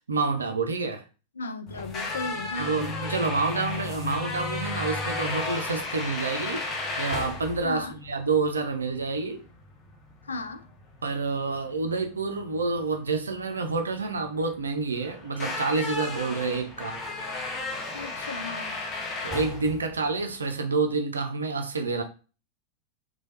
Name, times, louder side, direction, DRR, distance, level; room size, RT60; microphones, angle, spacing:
voice 1, 0.1-1.0 2.6-6.7 7.0-9.4 11.0-17.0 19.2-22.0, right 4 dB, 75° right, 0.4 m, -28 dB
voice 2, 1.4-2.8 7.6-8.0 10.2-10.7 17.9-18.8, left 3 dB, 75° left, 0.3 m, -35 dB
sound 1, 1.7-20.6, left 3 dB, 30° left, 0.7 m, -34 dB
3.1 x 2.1 x 2.8 m
figure-of-eight pair, 90°, 0 cm